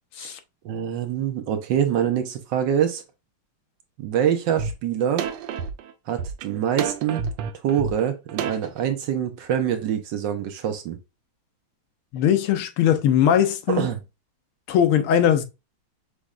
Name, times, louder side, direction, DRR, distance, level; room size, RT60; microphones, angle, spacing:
voice 1, 0.6-3.0 4.0-5.3 6.1-7.3 7.6-11.0 13.7-14.0, right 9 dB, 65° right, 1.3 m, -25 dB
sound 1, 4.6-4.7 5.2-8.8, right 7 dB, 85° right, 1.5 m, -29 dB
voice 2, 12.1-13.9 14.7-15.4, left 9 dB, 85° left, 1.6 m, -20 dB
6.2 x 3.4 x 2.4 m
omnidirectional pair, 2.3 m